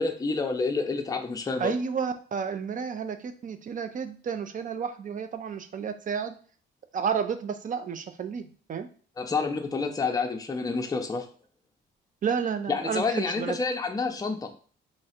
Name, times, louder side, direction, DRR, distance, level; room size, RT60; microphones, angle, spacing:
voice 1, 0.0-1.7 9.2-11.3 12.7-14.5, left 4 dB, 20° left, 4 dB, 0.6 m, -28 dB
voice 2, 1.6-6.3 6.9-8.9 12.2-13.6, right 6 dB, 40° right, 9 dB, 0.5 m, -31 dB
3.1 x 2.4 x 4.3 m, 0.43 s
cardioid pair, 90°, 20 cm